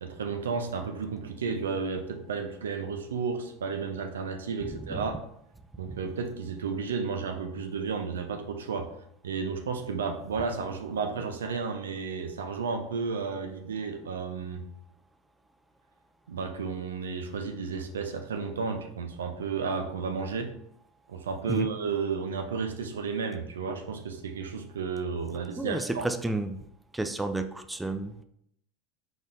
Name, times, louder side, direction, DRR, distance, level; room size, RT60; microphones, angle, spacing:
voice 1, 0.0-5.2 5.8-8.9 9.2-14.6 16.3-20.5 21.1-26.0, right 5 dB, 80° right, 6 dB, 0.5 m, -32 dB
voice 2, 25.6-26.6 26.9-28.2, right 2 dB, 10° right, 8 dB, 0.4 m, -31 dB
4.8 x 4.0 x 2.6 m, 0.71 s
hypercardioid pair, 80°, 0 cm